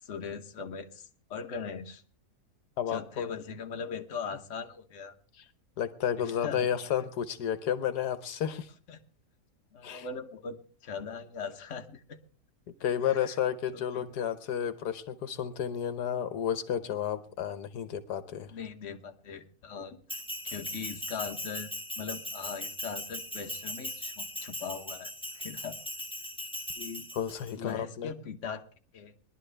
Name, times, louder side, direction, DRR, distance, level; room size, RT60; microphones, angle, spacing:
voice 1, 0.0-2.0 2.9-5.1 6.2-6.7 8.9-9.0 9.7-10.6 10.8-12.2 13.0-13.3 13.7-14.0 18.5-25.8 26.8-27.1 27.6-28.7 28.9-29.1, left 5 dB, 50° left, 5 dB, 1.3 m, -40 dB
voice 2, 2.8-3.3 5.4-5.5 5.8-8.7 9.8-10.1 12.8-18.5 27.1-28.1, left 9 dB, 80° left, 12 dB, 1.4 m, -32 dB
Bell, 20.1-27.5, left 1 dB, 10° left, 0.3 m, -39 dB
21.0 x 11.5 x 3.3 m, 0.39 s
omnidirectional pair, 1.7 m